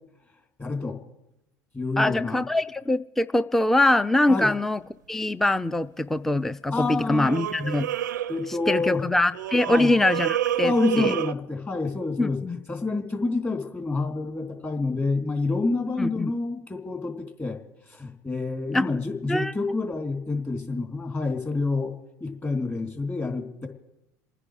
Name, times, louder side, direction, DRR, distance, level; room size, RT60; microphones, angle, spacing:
voice 1, 0.6-1.0 1.7-2.4 4.3-4.5 6.7-7.3 8.3-9.0 9.7-9.9 10.6-12.4 12.7-17.6 17.9-21.9 22.2-23.7, left 3 dB, 25° left, 4 dB, 3.3 m, -28 dB
voice 2, 2.0-4.8 5.1-7.9 8.5-11.1 12.2-12.6 16.0-16.3 18.7-18.9 19.3-19.5, left 1 dB, 5° left, 15 dB, 0.4 m, -23 dB
sound 1, 4.3-4.5 7.1-8.9 9.3-11.3, right 12 dB, 85° right, 0.4 m, -29 dB
28.5 x 9.8 x 4.9 m, 0.93 s
hypercardioid pair, 75°, 10 cm